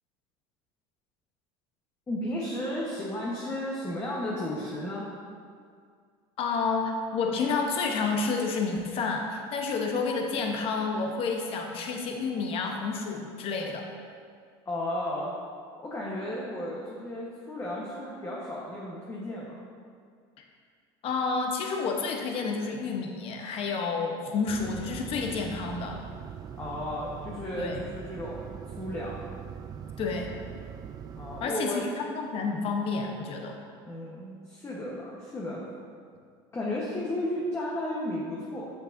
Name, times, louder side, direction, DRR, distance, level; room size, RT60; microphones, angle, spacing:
voice 1, 2.1-5.1 14.6-15.3 15.8-19.6 26.6-28.5 28.8-29.2 31.2-31.8 33.8-35.6 36.5-38.7, left 1 dB, 20° left, -5 dB, 1.1 m, -34 dB
voice 2, 6.4-13.9 21.0-26.0 27.6-27.8 30.0-30.3 31.4-33.6, left 4 dB, 50° left, 2 dB, 0.9 m, -30 dB
sound 1, 24.5-31.5, right 8 dB, 30° right, 0.3 m, -41 dB
7.3 x 7.2 x 2.6 m, 2.1 s
supercardioid pair, 110°, 13 cm